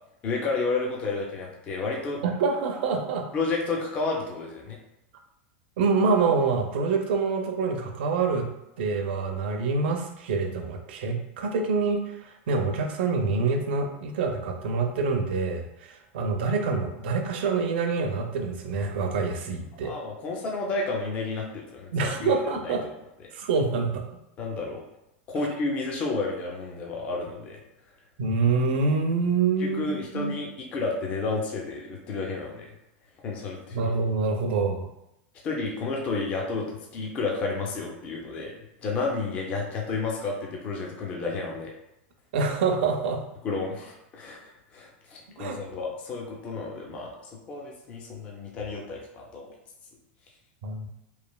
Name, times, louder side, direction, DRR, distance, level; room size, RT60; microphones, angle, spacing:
voice 1, 0.2-2.2 3.3-4.8 19.8-22.7 24.4-24.8 25.3-27.6 29.6-32.7 33.2-33.9 35.4-38.5 38.8-41.7 43.4-47.1 47.5-49.5, left 3 dB, 20° left, -1 dB, 0.3 m, -31 dB
voice 2, 2.2-3.3 5.8-8.5 8.8-19.9 21.9-22.8 23.3-24.0 25.4-25.5 28.2-30.3 33.7-34.9 42.3-43.2 45.4-45.6 50.6-50.9, right 4 dB, 60° right, 3 dB, 0.5 m, -26 dB
3.1 x 2.4 x 2.2 m, 0.87 s
supercardioid pair, 170°, 6 cm